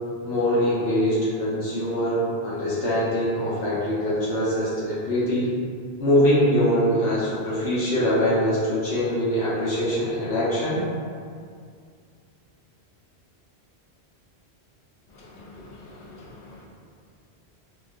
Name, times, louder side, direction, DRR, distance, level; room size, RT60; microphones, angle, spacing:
voice 1, 0.2-5.5 6.0-10.8, equal, 85° left, -9 dB, 1.3 m, -23 dB
voice 2, 15.1-16.7, left 2 dB, 60° left, -2 dB, 0.6 m, -46 dB
3.6 x 2.4 x 2.5 m, 2.2 s
omnidirectional pair, 1.1 m